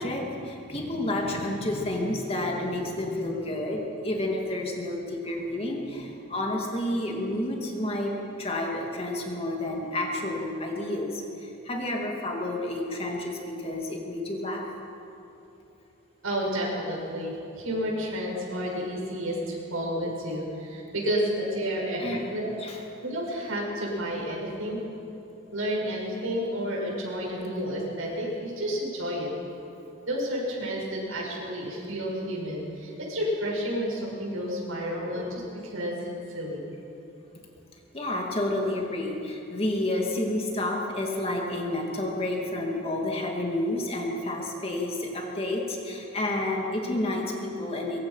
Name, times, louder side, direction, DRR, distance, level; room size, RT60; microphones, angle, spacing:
voice 1, 0.0-14.7 22.0-22.2 22.6-22.8 37.9-48.0, left 1 dB, 25° left, 0 dB, 2.5 m, -30 dB
voice 2, 16.2-22.5 23.0-24.8 25.5-29.3 30.0-36.6 47.5-47.6, equal, 75° right, -3 dB, 6.8 m, -31 dB
23.5 x 22.5 x 5.8 m, 2.9 s
head